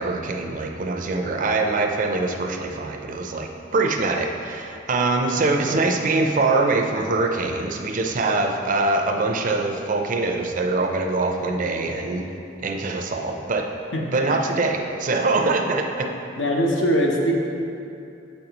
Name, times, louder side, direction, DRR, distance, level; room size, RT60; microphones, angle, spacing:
voice 1, 0.0-12.2 12.6-13.7 14.1-16.1, right 3 dB, 45° right, 3 dB, 0.5 m, -23 dB
voice 2, 5.3-5.8 13.9-14.0 16.4-17.3, equal, 80° left, -1 dB, 0.8 m, -22 dB
7.2 x 5.3 x 3.0 m, 2.7 s
head